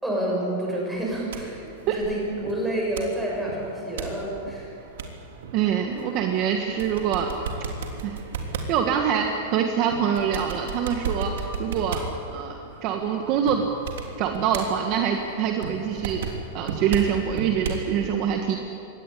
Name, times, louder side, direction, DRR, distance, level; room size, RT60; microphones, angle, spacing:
voice 1, 0.0-4.8, right 1 dB, 5° right, -3 dB, 6.3 m, -29 dB
sound 1, 0.9-17.9, right 5 dB, 70° right, 3.5 m, -36 dB
voice 2, 5.5-7.3 8.0-8.2 8.7-12.0 12.3-13.7 14.2-16.3 16.5-18.6, right 8 dB, 35° right, 4 dB, 1.5 m, -25 dB
24.0 x 18.5 x 9.9 m, 2.8 s
supercardioid pair, 170°, 0 cm